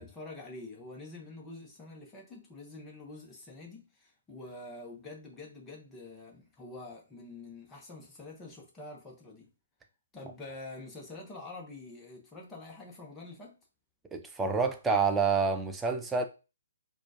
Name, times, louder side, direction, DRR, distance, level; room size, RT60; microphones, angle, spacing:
voice 1, 0.0-9.5 10.1-13.6, left 2 dB, 10° left, 1.0 m, -46 dB
voice 2, 14.1-16.2, right 5 dB, 10° right, 0.4 m, -28 dB
4.2 x 2.4 x 2.8 m
figure-of-eight pair, 130°, 0 cm